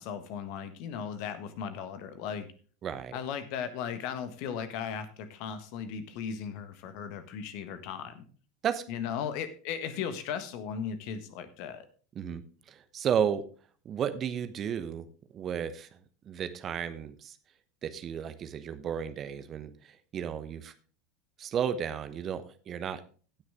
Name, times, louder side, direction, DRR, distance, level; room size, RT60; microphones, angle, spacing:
voice 1, 0.0-2.5 3.1-8.3 8.9-11.9, left 7 dB, 50° left, 11 dB, 1.3 m, -37 dB
voice 2, 2.8-3.2 8.6-8.8 12.1-13.4 13.8-15.1 15.3-16.0 16.2-17.4 17.8-20.7 21.4-23.0, right 8 dB, 35° right, 11 dB, 1.1 m, -33 dB
17.0 x 6.3 x 3.5 m, 0.39 s
figure-of-eight pair, 80°, 0 cm